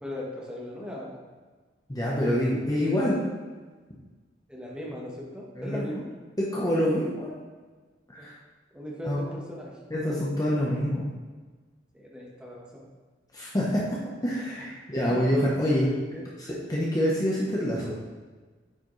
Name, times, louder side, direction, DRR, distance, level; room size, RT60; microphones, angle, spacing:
voice 1, 0.0-1.2 4.5-6.0 8.2-8.3 8.7-9.8 11.9-12.8 15.1-15.2 15.7-16.3, left 1 dB, 5° right, -4 dB, 1.2 m, -38 dB
voice 2, 1.9-3.2 5.6-5.8 6.4-7.3 8.1-8.3 9.0-9.2 9.9-11.1 13.3-13.8 14.2-15.9 16.4-17.9, equal, 20° left, -5 dB, 0.9 m, -26 dB
8.7 x 4.9 x 3.2 m, 1.4 s
head